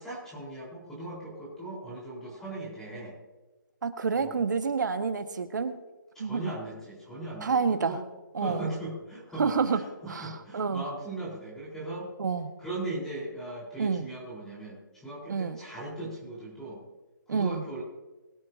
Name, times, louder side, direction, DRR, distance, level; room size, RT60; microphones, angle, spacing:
voice 1, 0.0-3.2 4.1-4.4 6.1-8.0 8.4-12.1 12.6-16.8 17.3-17.8, right 2 dB, 5° left, -7 dB, 4.3 m, -38 dB
voice 2, 3.8-5.8 6.2-6.5 7.4-8.0 8.3-8.7 9.4-10.9 12.2-12.5 13.8-14.1 15.3-15.6 17.3-17.6, right 5 dB, 60° right, 9 dB, 1.6 m, -28 dB
23.0 x 11.0 x 2.8 m, 1.2 s
hypercardioid pair, 160°, 11 cm